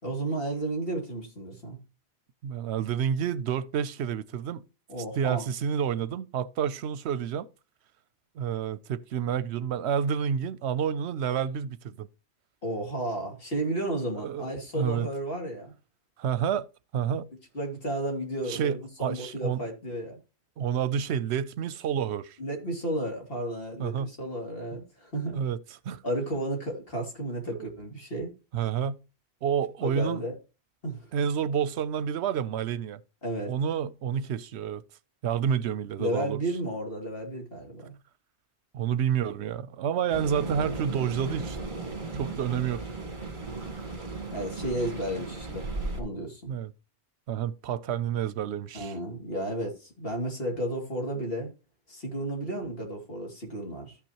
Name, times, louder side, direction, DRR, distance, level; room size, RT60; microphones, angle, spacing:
voice 1, 0.0-1.8 4.9-5.5 12.6-15.7 17.5-20.2 22.4-25.4 26.0-28.3 29.8-30.4 30.8-31.1 33.2-33.5 36.0-37.9 44.3-45.7 46.0-46.5 48.7-51.5 51.9-54.0, right 1 dB, 60° left, 2.8 m, -33 dB
voice 2, 2.4-4.6 5.2-7.5 8.4-12.1 14.2-15.1 16.2-16.7 16.9-17.3 18.5-19.6 20.6-22.4 23.8-24.1 25.3-25.6 25.8-26.0 27.5-27.7 28.5-29.0 29.4-30.2 31.1-33.0 33.5-34.8 35.2-36.4 38.7-41.6 42.1-42.8 46.5-46.7 47.3-48.9, right 8 dB, 80° right, 0.9 m, -29 dB
sound 1, 40.1-46.0, right 3 dB, 45° right, 2.0 m, -36 dB
13.5 x 5.8 x 2.9 m
omnidirectional pair, 1.1 m